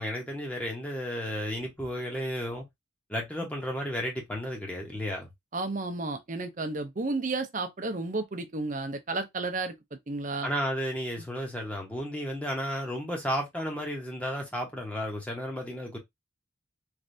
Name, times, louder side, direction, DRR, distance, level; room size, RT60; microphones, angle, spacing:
voice 1, 0.0-2.6 3.1-5.3 10.4-16.0, equal, 5° left, 0.8 m, -33 dB
voice 2, 5.5-9.7 10.1-10.5, right 3 dB, 40° right, 0.6 m, -32 dB
3.2 x 2.6 x 2.6 m
head